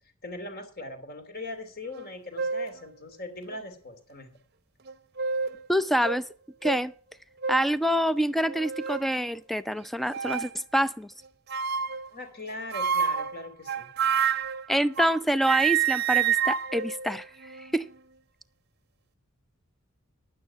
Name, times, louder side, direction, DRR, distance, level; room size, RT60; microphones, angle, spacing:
voice 1, 0.2-4.3 12.1-13.9, left 2 dB, 45° left, 2.8 m, -40 dB
sound 1, 1.9-2.1 2.4-2.8 3.5-3.6 4.9-5.6 6.0-6.2 6.6-6.8 7.4-7.7 8.4-9.1 10.1-10.6 11.5-12.1 12.7-15.2 15.4-17.8, right 7 dB, 50° right, 0.7 m, -28 dB
voice 2, 5.7-6.2 6.6-6.9 7.5-11.1 14.7-17.3 17.7-17.9, equal, ahead, 0.5 m, -26 dB
10.5 x 9.1 x 5.8 m
head